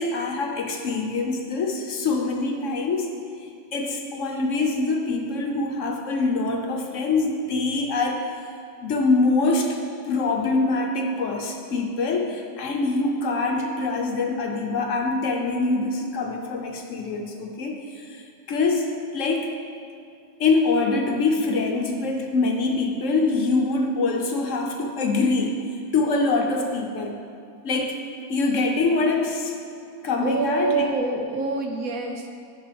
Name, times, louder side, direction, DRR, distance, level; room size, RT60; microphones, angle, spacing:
voice 1, 0.0-3.1 3.4-8.2 8.8-9.8 10.1-18.9 19.1-19.5 20.4-25.6 25.9-27.1 27.6-28.0 28.3-29.5 30.0-30.9, left 3 dB, 60° left, 2 dB, 1.0 m, -24 dB
voice 2, 30.2-32.3, right 3 dB, 70° right, 3 dB, 1.1 m, -26 dB
12.0 x 6.1 x 3.3 m, 2.4 s
omnidirectional pair, 1.6 m